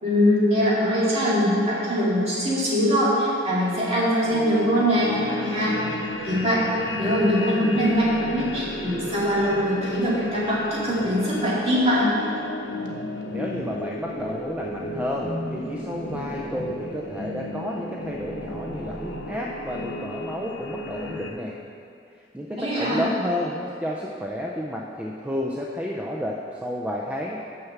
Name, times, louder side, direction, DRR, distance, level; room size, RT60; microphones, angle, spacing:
voice 1, 0.0-5.7 6.2-6.6 7.0-12.1 22.6-23.1, equal, 35° right, -7 dB, 2.3 m, -22 dB
sound 1, 4.3-21.3, left 1 dB, 80° left, 1.1 m, -33 dB
voice 2, 13.3-21.6 22.3-27.4, equal, 10° right, -2 dB, 0.5 m, -31 dB
6.5 x 6.0 x 7.1 m, 2.5 s
head